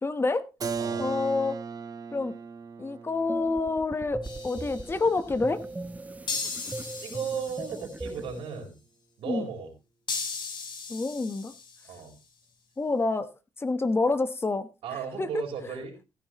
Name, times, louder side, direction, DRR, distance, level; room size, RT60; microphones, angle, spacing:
voice 1, 0.0-0.5 1.0-1.6 2.1-2.3 2.8-5.6 9.3-9.5 10.9-11.5 12.8-13.3 13.6-14.7 15.2-15.3, left 3 dB, 25° left, 1.1 m, -27 dB
Keyboard (musical), 0.6-6.2, right 5 dB, 40° right, 1.3 m, -38 dB
voice 2, 0.8-1.1 7.0-8.8 9.2-9.7 11.9-12.2 14.8-15.9, right 6 dB, 85° right, 4.3 m, -35 dB
sound 1, 3.3-8.4, right 2 dB, 15° right, 0.8 m, -39 dB
sound 2, 4.2-5.1 6.3-8.2 10.1-12.0, left 4 dB, 55° left, 4.5 m, -37 dB
15.5 x 9.9 x 3.0 m
cardioid pair, 95°, 9 cm